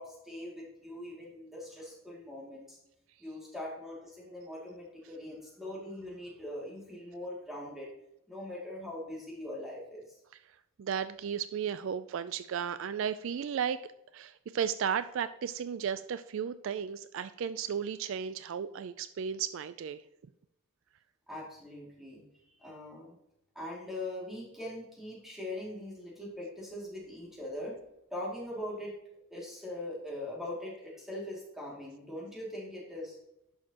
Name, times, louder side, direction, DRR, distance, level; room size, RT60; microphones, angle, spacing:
voice 1, 0.0-2.8 3.2-7.9 8.3-10.2 21.3-22.2 22.6-23.1 23.5-27.8 28.1-28.9 29.3-33.2, left 1 dB, ahead, -4 dB, 2.3 m, -41 dB
voice 2, 10.8-13.8 14.1-20.0, right 7 dB, 60° right, 13 dB, 0.3 m, -34 dB
11.0 x 6.4 x 2.9 m, 0.86 s
head